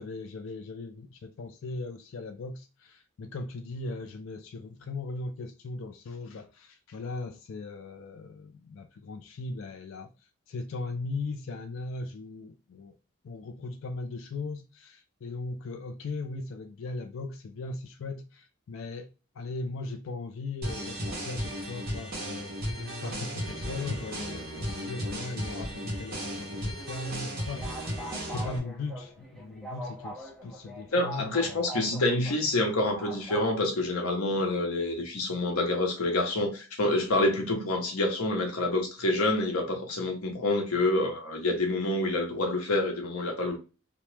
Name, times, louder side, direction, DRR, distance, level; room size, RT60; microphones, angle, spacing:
voice 1, 0.0-10.1 10.5-12.9 13.2-19.1 19.4-31.9, left 3 dB, 60° left, 0.3 m, -38 dB
sound 1, 20.6-28.6, equal, 45° right, 1.0 m, -35 dB
sound 2, 27.1-33.5, equal, ahead, 0.5 m, -43 dB
voice 2, 30.9-43.6, left 2 dB, 90° left, 0.8 m, -27 dB
2.8 x 2.1 x 3.2 m
head